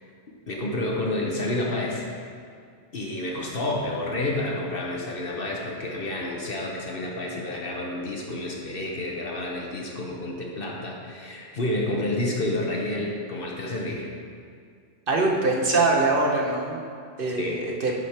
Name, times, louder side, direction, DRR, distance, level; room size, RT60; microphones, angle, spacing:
voice 1, 0.5-2.0 2.9-14.1 17.3-17.6, left 1 dB, 55° left, -2 dB, 1.2 m, -29 dB
voice 2, 15.1-16.8 17.2-17.9, right 3 dB, 50° right, -1 dB, 1.2 m, -23 dB
10.5 x 5.1 x 4.4 m, 2.2 s
omnidirectional pair, 1.2 m